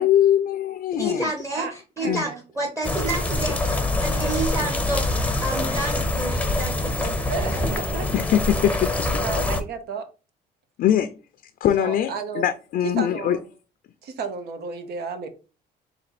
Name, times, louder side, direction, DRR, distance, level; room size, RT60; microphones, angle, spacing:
voice 1, 0.0-1.3 2.0-2.3 8.1-8.9 10.8-11.2 11.6-13.4, left 11 dB, 60° left, 0.5 m, -22 dB
voice 2, 0.9-2.3 2.6-3.6 4.0-5.2 5.4-7.1 7.5-8.0, right 1 dB, 15° right, 1.1 m, -29 dB
voice 3, 1.5-2.4 3.0-3.1 5.5-5.7 7.3-8.1 9.2-10.1 11.8-12.5 12.8-13.4 14.0-15.3, right 5 dB, 70° right, 0.9 m, -32 dB
sound 1, 2.8-9.6, left 2 dB, 10° left, 0.7 m, -25 dB
4.3 x 2.8 x 4.1 m
cardioid pair, 110°, 17 cm